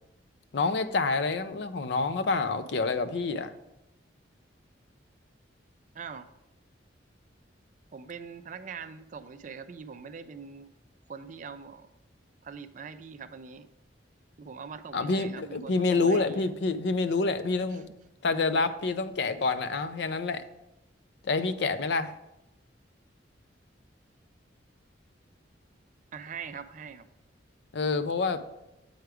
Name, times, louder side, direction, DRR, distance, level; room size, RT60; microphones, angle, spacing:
voice 1, 0.5-3.5 14.9-17.8 18.2-20.4 21.2-22.1 27.7-28.4, left 3 dB, 60° left, 11 dB, 0.4 m, -27 dB
voice 2, 5.9-6.3 7.9-10.7 11.1-11.9 12.4-13.7 14.4-16.5 17.7-17.8 26.1-27.1, right 6 dB, 40° right, 11 dB, 0.4 m, -42 dB
7.8 x 4.6 x 4.8 m, 0.91 s
head